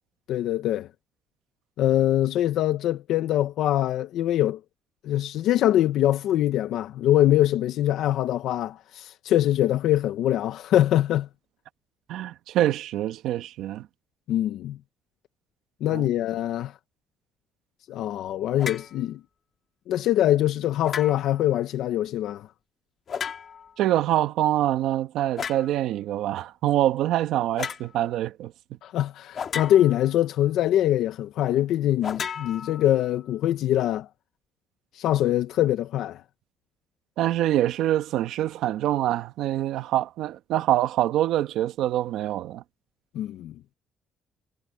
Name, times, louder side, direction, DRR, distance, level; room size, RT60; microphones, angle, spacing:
voice 1, 0.3-0.9 1.8-4.6 5.0-11.3 14.3-14.8 15.8-16.7 17.9-19.2 19.9-22.5 28.8-34.1 34.9-36.2 43.1-43.5, left 12 dB, 70° left, 0.8 m, -23 dB
voice 2, 12.1-13.8 15.9-16.0 23.8-28.5 37.2-42.6, right 13 dB, 80° right, 1.4 m, -25 dB
sound 1, 18.6-18.9 20.8-21.4 23.1-23.7 25.4-25.7 27.6-27.9 29.3-30.1 32.0-33.1, left 7 dB, 35° left, 2.4 m, -34 dB
cardioid pair, 180°, 0 cm